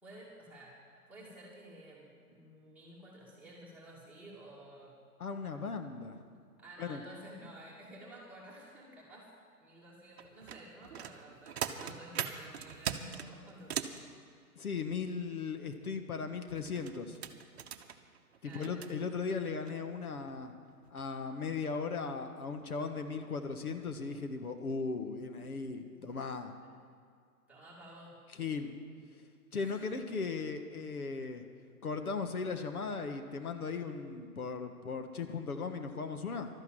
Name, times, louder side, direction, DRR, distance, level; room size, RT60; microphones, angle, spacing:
voice 1, 0.0-0.8 1.1-4.9 6.6-9.3 9.6-14.0 18.4-18.8 27.5-28.2 29.5-30.0, right 1 dB, 5° right, -7 dB, 2.5 m, -52 dB
voice 2, 5.2-6.2 6.8-7.0 14.5-17.2 18.4-20.5 20.9-26.5 28.3-28.7 29.5-31.4 31.8-36.5, left 4 dB, 70° left, 7 dB, 1.5 m, -37 dB
sound 1, 10.2-14.0 16.5-18.9 19.6-19.7 20.2-20.4 20.8-21.1 21.4-21.5, right 8 dB, 45° right, 0.9 m, -40 dB
12.5 x 10.5 x 7.7 m, 2.3 s
hypercardioid pair, 135°, 45 cm